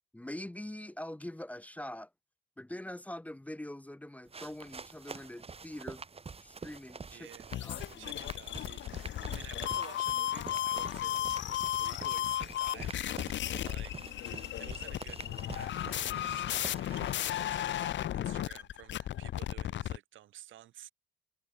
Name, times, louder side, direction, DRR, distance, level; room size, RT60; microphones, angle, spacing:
voice 1, 0.1-2.1 2.6-6.0 6.4-7.3 7.6-8.1, left 1 dB, 5° left, 0.9 m, -44 dB
sound 1, 4.3-17.5, right 4 dB, 30° right, 2.3 m, -47 dB
voice 2, 7.1-14.0 14.6-20.9, right 13 dB, 80° right, 2.1 m, -53 dB
sound 2, 7.5-20.0, left 12 dB, 70° left, 1.0 m, -35 dB
cardioid pair, 90°, 20 cm